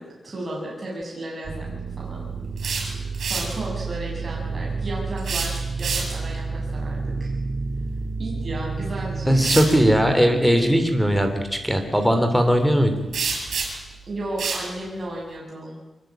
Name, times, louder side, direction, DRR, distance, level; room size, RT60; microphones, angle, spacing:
voice 1, 0.0-2.2 3.2-7.3 8.2-9.8 14.1-15.8, right 1 dB, 25° right, -4 dB, 7.5 m, -34 dB
sound 1, 1.4-10.1, right 4 dB, 45° right, 2.3 m, -30 dB
sound 2, 2.4-3.6 5.2-6.3 8.4-8.6 9.3-9.8 13.1-13.9 14.4-14.7, right 5 dB, 75° right, 7.2 m, -28 dB
voice 2, 9.3-12.9, equal, ahead, 6 dB, 3.0 m, -19 dB
25.0 x 22.0 x 9.0 m, 1.0 s
wide cardioid pair, 165°, 0 cm